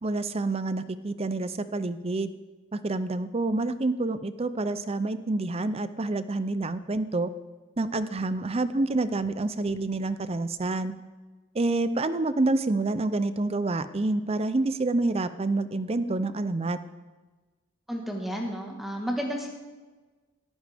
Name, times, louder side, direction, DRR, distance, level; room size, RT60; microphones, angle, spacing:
voice 1, 0.0-2.3 2.7-7.3 7.8-10.9 11.5-16.8, right 2 dB, 30° right, 13 dB, 0.6 m, -28 dB
voice 2, 17.9-19.5, equal, ahead, 0 dB, 1.5 m, -31 dB
18.0 x 14.0 x 3.5 m, 1.3 s
head